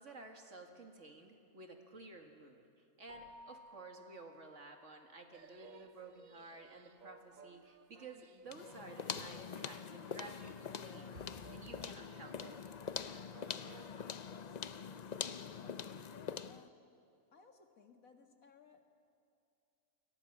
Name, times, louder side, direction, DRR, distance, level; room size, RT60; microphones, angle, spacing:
voice 1, 0.0-12.6, right 3 dB, 60° right, 4 dB, 2.4 m, -53 dB
Keyboard (musical), 3.1-5.5, equal, 40° right, 3.4 m, -58 dB
sound 1, 5.3-14.3, right 7 dB, 75° right, 1.2 m, -61 dB
sound 2, 8.5-16.7, left 7 dB, 50° left, 0.5 m, -44 dB
voice 2, 15.3-16.7 17.3-18.8, left 5 dB, 75° left, 4 dB, 2.3 m, -61 dB
29.0 x 22.5 x 6.1 m, 2.4 s
omnidirectional pair, 1.5 m